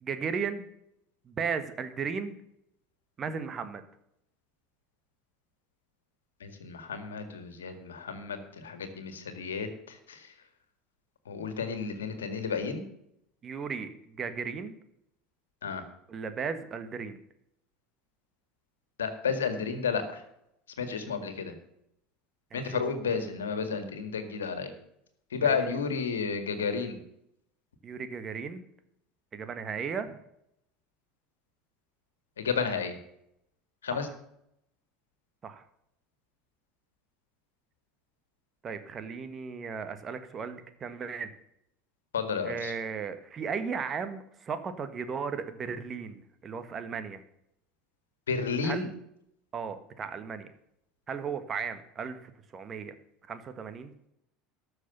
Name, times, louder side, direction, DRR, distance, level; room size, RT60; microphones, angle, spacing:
voice 1, 0.0-0.7 1.2-2.4 3.2-3.8 13.4-14.8 16.1-17.2 22.5-22.9 25.4-25.8 27.8-28.6 29.3-30.2 33.9-34.2 35.4-35.6 38.6-41.3 42.4-47.2 48.6-48.9 49.5-50.5 51.1-52.9 53.3-53.9, right 6 dB, 35° right, 10 dB, 1.6 m, -36 dB
voice 2, 6.4-10.2 11.3-12.8 15.6-15.8 19.0-20.2 20.8-21.5 22.5-24.7 25.3-27.0 32.4-32.9 33.8-34.1 42.1-42.7 48.3-48.9, left 5 dB, 80° left, 9 dB, 1.8 m, -32 dB
13.0 x 6.6 x 7.0 m, 0.77 s
figure-of-eight pair, 75°, 0 cm